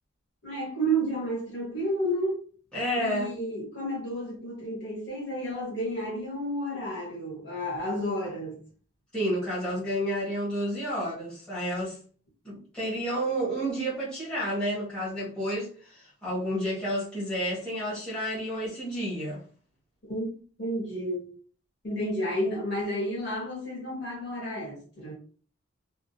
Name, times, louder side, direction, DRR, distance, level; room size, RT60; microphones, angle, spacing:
voice 1, 0.4-2.4 3.0-8.6 20.0-20.3 20.6-21.3 21.8-25.1, right 1 dB, 55° left, 1.5 m, -31 dB
voice 2, 2.7-3.3 9.1-12.0 12.4-19.4, equal, 5° left, 1.4 m, -30 dB
3.6 x 2.1 x 2.7 m
head